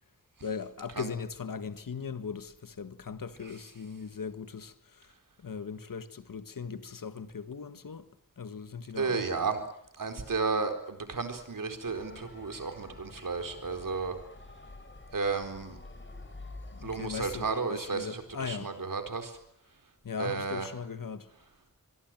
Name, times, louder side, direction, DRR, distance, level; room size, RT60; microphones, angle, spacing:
voice 1, 0.4-5.1 5.4-8.1 8.4-9.3 16.7-18.7 20.0-21.3, left 6 dB, 90° left, 1.7 m, -39 dB
voice 2, 9.0-9.6 9.9-14.2 15.1-15.8 16.8-19.4 20.2-20.7, right 4 dB, 80° right, 4.3 m, -33 dB
Motor vehicle (road) / Siren, 11.8-17.5, left 2 dB, 35° left, 4.5 m, -48 dB
24.5 x 23.0 x 7.7 m
wide cardioid pair, 65°, 32 cm